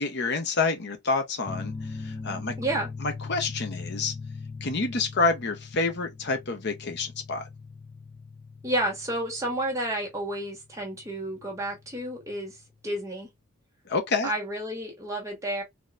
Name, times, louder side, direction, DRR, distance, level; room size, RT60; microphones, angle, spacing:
voice 1, 0.0-2.5 3.0-4.1 4.6-7.5 13.9-14.3, left 3 dB, 50° left, 0.8 m, -28 dB
sound 1, 1.5-12.7, left 4 dB, 20° left, 0.6 m, -41 dB
voice 2, 2.6-2.9 8.6-13.3 14.2-15.6, right 1 dB, 15° right, 1.7 m, -31 dB
4.1 x 2.9 x 2.4 m
head